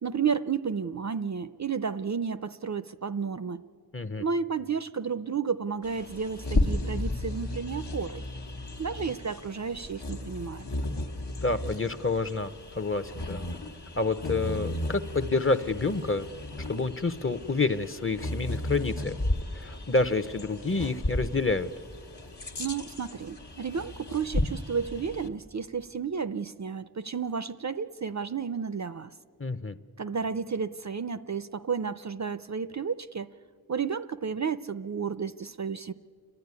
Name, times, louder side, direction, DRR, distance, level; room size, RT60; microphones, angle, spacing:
voice 1, 0.0-3.6 4.2-8.2 8.8-10.7 22.6-29.1 30.0-33.3 33.7-35.9, right 6 dB, 45° right, 13 dB, 0.5 m, -32 dB
voice 2, 3.9-4.2 11.4-13.4 14.0-16.3 16.7-19.2 19.5-21.7 29.4-29.8, left 3 dB, 30° left, 11 dB, 0.7 m, -28 dB
Bird vocalization bird call bird song, 5.8-25.3, left 1 dB, 80° left, 1.3 m, -34 dB
29.5 x 12.0 x 9.6 m, 2.4 s
wide cardioid pair, 45°, 40 cm